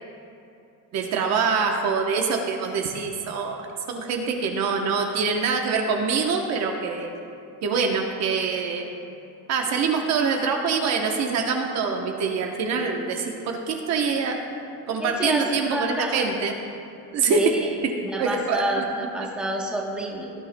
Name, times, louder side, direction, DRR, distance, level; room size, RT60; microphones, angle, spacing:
voice 1, 0.9-7.1 7.6-8.9 9.5-14.4 14.9-16.5 17.1-17.5 17.8-17.9 18.2-18.8, right 5 dB, 45° right, 2 dB, 0.9 m, -25 dB
voice 2, 15.0-16.3 17.3-17.7 18.0-20.3, right 1 dB, 5° right, -2 dB, 1.0 m, -29 dB
18.5 x 9.1 x 2.2 m, 2.6 s
cardioid pair, 160°, 37 cm